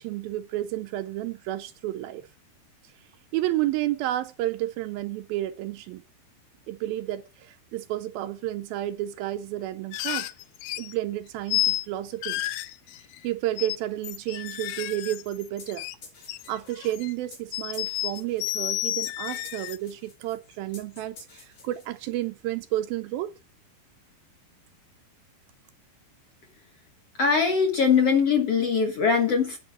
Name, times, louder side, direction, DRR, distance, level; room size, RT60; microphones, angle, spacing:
voice 1, 0.0-2.2 3.3-6.0 6.7-10.3 10.8-12.4 13.2-15.9 16.5-23.3, right 14 dB, 80° right, 2.3 m, -31 dB
sound 1, 9.9-10.9 11.5-11.9 12.2-13.3 13.6-13.8 14.0-15.9 16.2-17.1 17.5-19.8, left 15 dB, 80° left, 2.3 m, -31 dB
sound 2, 15.6-22.3, left 4 dB, 40° left, 4.8 m, -50 dB
voice 2, 27.2-29.6, left 6 dB, 55° left, 1.8 m, -21 dB
10.0 x 5.7 x 7.9 m
omnidirectional pair, 4.5 m